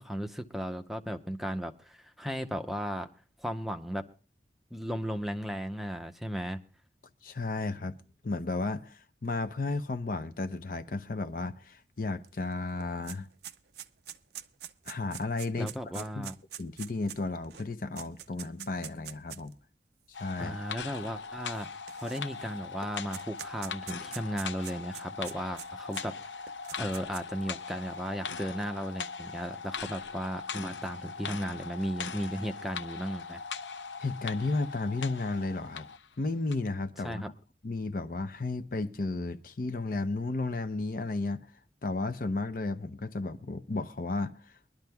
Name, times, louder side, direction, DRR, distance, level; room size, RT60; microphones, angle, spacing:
voice 1, 0.0-3.1 3.4-4.0 4.7-6.6 15.6-16.4 20.4-21.7 22.0-26.5 26.8-33.4 37.0-37.3, equal, ahead, 0.6 m, -35 dB
voice 2, 7.2-8.0 8.2-13.3 14.9-15.7 15.9-16.3 16.6-19.5 20.2-20.6 34.0-35.9 36.2-37.2 37.6-41.5 41.8-44.5, left 3 dB, 50° left, 0.6 m, -33 dB
sound 1, 12.2-12.3 12.6-19.5 20.3-20.4 21.5-22.5 22.8-26.0 26.5-27.4, right 10 dB, 65° right, 0.5 m, -44 dB
sound 2, 20.1-36.1 36.5-36.6, left 5 dB, 90° left, 0.7 m, -40 dB
23.0 x 12.0 x 2.2 m
head